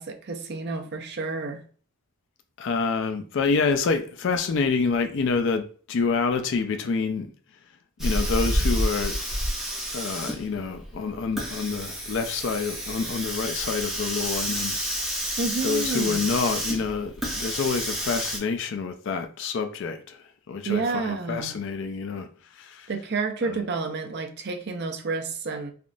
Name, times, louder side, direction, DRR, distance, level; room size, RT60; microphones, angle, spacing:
voice 1, 0.0-1.6 15.4-16.3 20.6-21.5 22.9-25.7, right 4 dB, 50° right, 0.5 m, -30 dB
voice 2, 2.6-7.3 8.0-9.2 9.9-15.2 15.6-22.3 22.5-22.9 23.4-23.6, left 4 dB, 55° left, 0.4 m, -27 dB
Hiss, 8.0-18.4, equal, ahead, 0.6 m, -29 dB
3.5 x 2.4 x 2.5 m
head